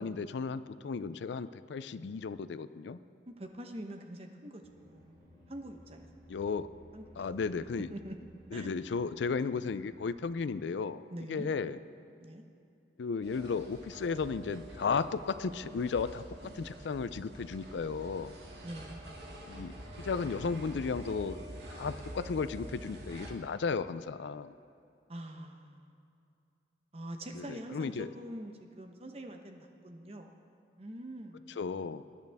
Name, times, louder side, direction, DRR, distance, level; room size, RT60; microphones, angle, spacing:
voice 1, 0.0-3.0 6.3-6.7 7.2-7.9 8.5-11.0 11.3-11.8 13.0-18.3 19.5-21.4 21.7-24.5 27.3-28.1 31.6-32.0, left 5 dB, 80° left, 14 dB, 0.4 m, -34 dB
voice 2, 3.3-5.2 5.5-6.1 6.9-7.3 7.6-8.1 8.5-8.7 11.1-11.5 12.2-12.4 18.6-19.1 25.1-26.0 26.9-30.3 30.8-31.5, right 1 dB, 35° right, 4 dB, 0.9 m, -44 dB
sound 1, 4.6-10.4, equal, 50° right, 3.9 m, -57 dB
sound 2, 13.2-23.3, right 1 dB, 70° right, 2.3 m, -46 dB
20.5 x 10.5 x 3.5 m, 2.5 s
head